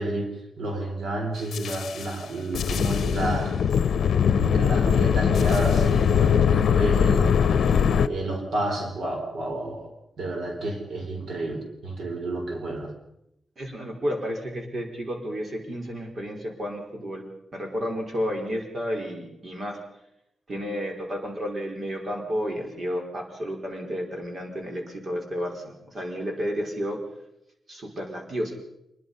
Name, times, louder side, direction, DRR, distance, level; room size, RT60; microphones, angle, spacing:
voice 1, 0.0-3.8 4.3-7.7 8.0-9.9 10.2-12.9, right 1 dB, 80° right, 3 dB, 4.7 m, -30 dB
sound 1, 1.5-2.0 2.5-8.1, left 7 dB, 75° left, 0.8 m, -21 dB
voice 2, 13.6-17.3 17.5-19.8 20.5-27.0 27.7-28.6, equal, 40° right, 2 dB, 4.9 m, -31 dB
27.0 x 21.0 x 5.6 m, 0.82 s
wide cardioid pair, 160°, 0 cm